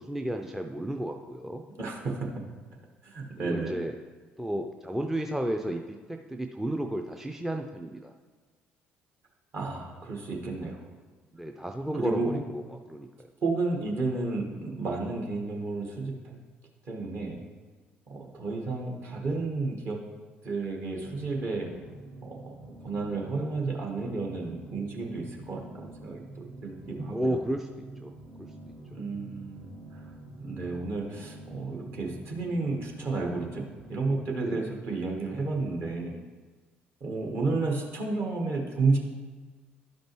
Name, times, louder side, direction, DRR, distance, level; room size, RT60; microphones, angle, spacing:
voice 1, 0.0-1.6 3.4-4.0 4.4-8.1 11.3-12.6 12.9-13.3 27.1-27.7 28.0-28.1 34.4-34.8, right 1 dB, 5° right, 4 dB, 0.4 m, -33 dB
voice 2, 1.8-2.3 3.0-3.8 9.5-10.9 12.0-12.3 13.4-16.4 16.8-17.4 18.1-20.0 20.4-21.7 22.2-22.5 22.8-27.4 28.9-30.1 30.4-36.2 37.0-39.0, right 3 dB, 45° right, 0 dB, 1.4 m, -32 dB
sound 1, 21.0-34.3, right 2 dB, 60° right, 1.3 m, -46 dB
12.0 x 5.2 x 3.0 m, 1.4 s
figure-of-eight pair, 50°, 6 cm